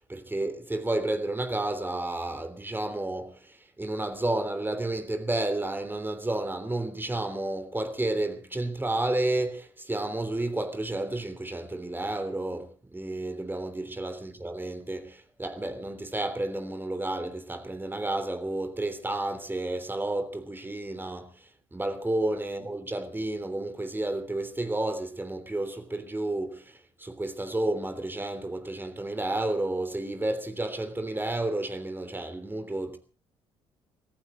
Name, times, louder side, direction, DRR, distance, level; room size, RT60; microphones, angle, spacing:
voice 1, 0.1-21.3 21.7-33.0, right 2 dB, 15° right, 3.2 m, -31 dB
24.5 x 14.5 x 3.8 m
figure-of-eight pair, 45°, 15 cm